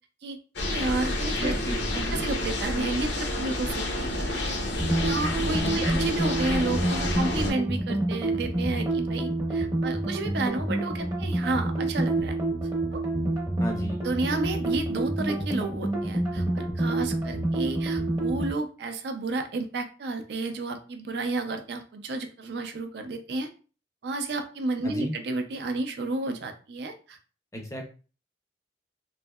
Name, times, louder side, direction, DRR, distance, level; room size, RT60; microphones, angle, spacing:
sound 1, 0.6-7.5, left 1 dB, 70° left, 0.6 m, -29 dB
voice 1, 0.7-1.5 1.9-4.4 5.0-12.4 12.9-13.0 14.0-23.5 24.0-27.2, right 2 dB, 65° right, 6 dB, 0.4 m, -31 dB
voice 2, 1.3-2.2 5.5-5.8 13.6-14.0 24.8-25.1 27.5-27.9, equal, 15° left, 2 dB, 0.5 m, -34 dB
sound 2, 4.8-18.5, right 2 dB, 20° right, 0.6 m, -28 dB
3.1 x 2.7 x 2.2 m, 0.36 s
head